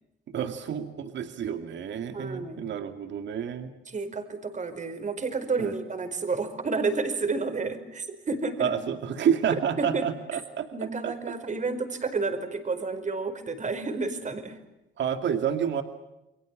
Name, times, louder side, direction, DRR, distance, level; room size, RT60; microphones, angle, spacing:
voice 1, 0.3-3.7 5.6-5.7 8.6-10.7 11.0-11.1 15.0-15.8, right 8 dB, 65° right, 7 dB, 2.2 m, -29 dB
voice 2, 2.1-2.7 3.9-8.7 9.8-10.0 10.7-14.6, right 4 dB, 40° right, 9 dB, 4.8 m, -30 dB
29.5 x 23.0 x 7.5 m, 0.95 s
cardioid pair, 90°, 20 cm